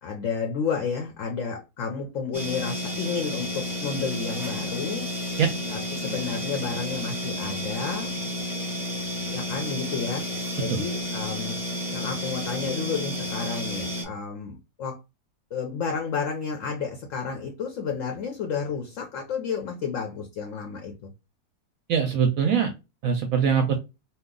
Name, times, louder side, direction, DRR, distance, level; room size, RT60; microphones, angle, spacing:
voice 1, 0.0-5.1 5.7-8.1 9.3-10.3 10.6-11.6 11.9-15.0 15.5-21.1, left 5 dB, 65° left, 0.9 m, -31 dB
sound 1, 2.3-14.0, left 1 dB, ahead, 0.8 m, -31 dB
voice 2, 21.9-22.7 23.0-23.7, right 7 dB, 70° right, 0.9 m, -22 dB
2.8 x 2.3 x 3.7 m
omnidirectional pair, 1.7 m